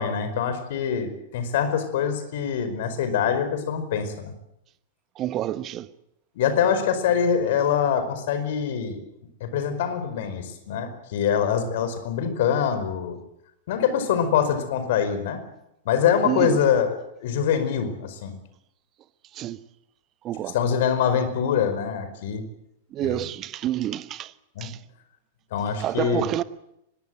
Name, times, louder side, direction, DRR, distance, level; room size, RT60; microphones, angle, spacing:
voice 1, 0.0-4.3 6.3-9.0 9.4-13.2 13.7-15.4 15.8-18.3 20.5-22.4 23.0-23.2 24.5-24.7 25.5-26.3, left 7 dB, 55° left, 5.0 m, -24 dB
voice 2, 5.2-5.9 16.2-16.6 19.3-19.6 20.2-20.5 22.9-24.3 24.6-24.8 25.8-26.4, right 13 dB, 30° right, 1.2 m, -28 dB
24.5 x 21.5 x 7.9 m
figure-of-eight pair, 95°, 0 cm